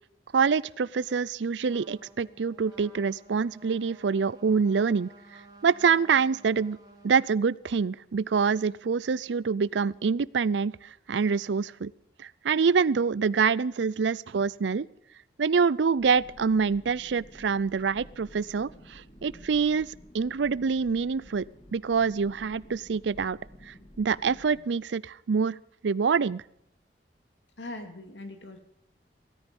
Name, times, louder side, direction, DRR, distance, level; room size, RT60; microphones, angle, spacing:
voice 1, 0.3-6.8 7.0-11.9 12.2-14.9 15.4-21.5 21.7-23.4 23.6-25.6 25.8-26.4, right 5 dB, 85° right, 22 dB, 0.5 m, -26 dB
Trumpet, 1.7-7.3, right 1 dB, 20° right, 3.1 m, -54 dB
sound 1, 16.0-24.6, equal, 30° left, 2.5 m, -52 dB
voice 2, 27.6-28.6, left 2 dB, 90° left, 7 dB, 2.6 m, -40 dB
17.0 x 14.0 x 5.3 m, 0.72 s
head